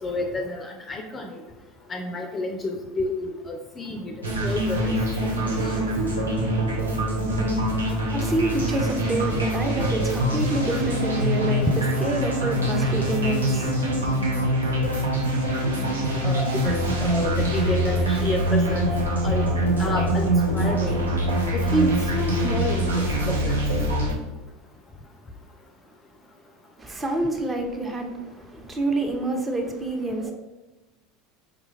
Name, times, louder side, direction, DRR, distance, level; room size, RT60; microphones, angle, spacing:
voice 1, 0.0-1.4 1.9-4.1 4.4-4.9 5.2-5.8 16.2-18.9 19.2-19.5 19.8-21.0 21.5-23.6, left 1 dB, 25° left, 0.4 m, -29 dB
sound 1, 4.2-24.1, right 1 dB, 90° right, 0.6 m, -24 dB
voice 2, 8.1-11.7 12.0-14.0 26.8-30.3, right 2 dB, 20° right, 0.7 m, -27 dB
4.9 x 2.3 x 3.1 m
hypercardioid pair, 80°, 0 cm